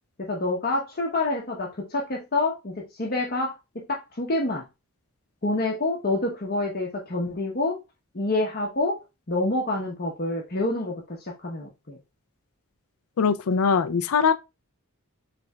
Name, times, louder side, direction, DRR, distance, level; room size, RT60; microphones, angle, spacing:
voice 1, 0.2-4.6 5.4-7.8 8.1-9.0 9.3-12.0, left 2 dB, 45° left, 0.9 m, -27 dB
voice 2, 13.2-14.3, left 6 dB, 70° left, 0.4 m, -21 dB
6.9 x 3.4 x 2.3 m
head